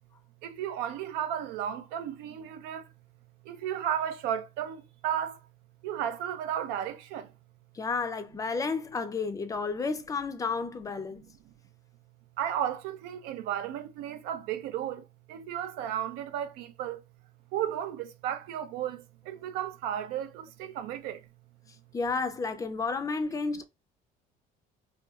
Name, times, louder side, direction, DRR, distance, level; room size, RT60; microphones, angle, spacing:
voice 1, 0.4-2.9 3.4-5.4 5.8-7.3 11.2-11.3 12.4-17.0 17.5-21.3, right 10 dB, 80° right, 0.4 m, -34 dB
voice 2, 7.8-11.2 21.9-23.6, left 4 dB, 20° left, 0.4 m, -31 dB
2.8 x 2.3 x 2.3 m
cardioid pair, 110°, 16 cm